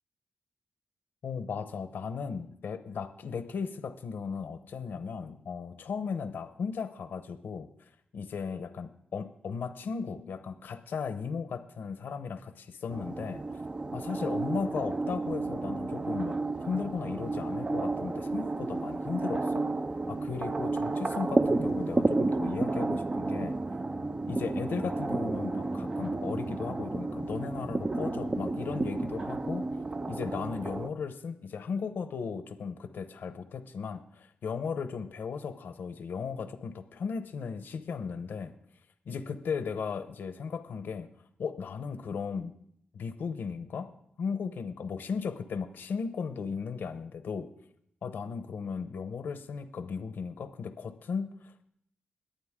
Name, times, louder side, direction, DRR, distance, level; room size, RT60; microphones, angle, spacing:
voice 1, 1.2-7.7 8.1-13.4 13.9-16.4 16.7-19.7 20.1-23.6 24.3-29.6 30.1-38.5 39.1-41.1 41.4-42.5 42.9-43.9 44.2-47.5 48.0-51.7, left 5 dB, 75° left, 10 dB, 0.9 m, -36 dB
sound 1, 12.9-30.9, right 2 dB, 25° right, 0.5 m, -31 dB
21.5 x 8.9 x 3.7 m, 0.71 s
cardioid pair, 85°, 3 cm